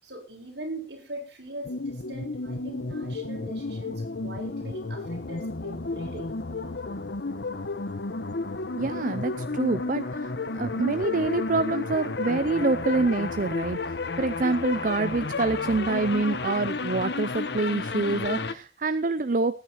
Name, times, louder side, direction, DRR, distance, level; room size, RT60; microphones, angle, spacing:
voice 1, 0.0-6.3, right 1 dB, 70° right, 6.8 m, -41 dB
sound 1, 1.6-18.5, left 3 dB, 70° left, 1.0 m, -32 dB
voice 2, 8.8-13.8 14.2-19.6, right 3 dB, 50° right, 0.6 m, -26 dB
19.0 x 9.4 x 4.5 m
head